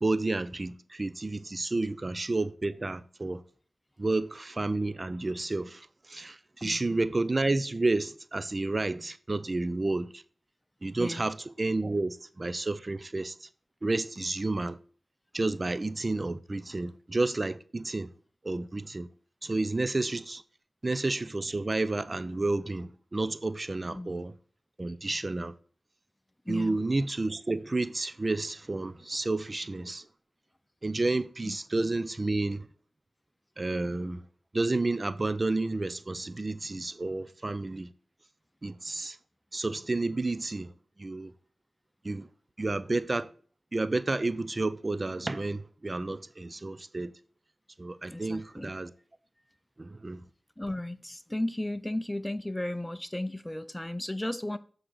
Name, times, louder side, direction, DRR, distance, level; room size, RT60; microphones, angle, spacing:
voice 1, 0.0-3.4 4.0-10.2 10.8-13.5 13.8-14.8 15.3-18.1 18.4-19.1 19.4-20.4 20.8-24.3 24.8-25.5 26.5-30.1 30.8-32.7 33.6-34.2 34.5-37.9 38.6-39.2 39.5-40.7 41.0-41.3 42.0-42.3 42.6-43.3 43.7-47.1 47.8-48.9 49.8-50.2, right 2 dB, 40° right, 0.5 m, -31 dB
voice 2, 6.6-7.1 11.0-11.2 23.9-24.2 26.5-26.8 31.4-31.6 48.1-48.7 50.6-54.6, left 1 dB, 15° left, 0.6 m, -35 dB
7.6 x 3.9 x 6.4 m
cardioid pair, 45°, 0 cm